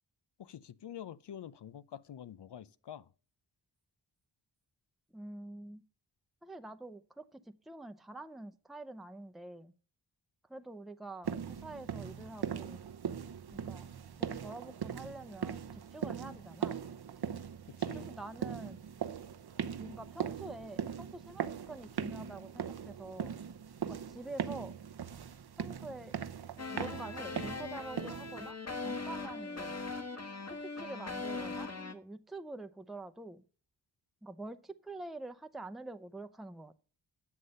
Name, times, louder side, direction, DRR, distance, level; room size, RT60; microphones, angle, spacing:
voice 1, 0.4-3.1 17.7-18.1, left 9 dB, 65° left, 0.7 m, -47 dB
voice 2, 5.1-5.8 6.4-9.7 10.5-12.8 13.5-13.9 14.2-16.8 17.9-18.8 19.8-23.3 23.8-24.8 25.6-26.2 26.7-29.8 30.6-33.4 34.2-36.8, right 2 dB, ahead, 0.8 m, -46 dB
sound 1, 11.2-28.5, right 7 dB, 60° right, 0.9 m, -40 dB
sound 2, 26.6-31.9, left 3 dB, 35° left, 1.7 m, -40 dB
9.7 x 6.6 x 5.4 m
cardioid pair, 55°, 44 cm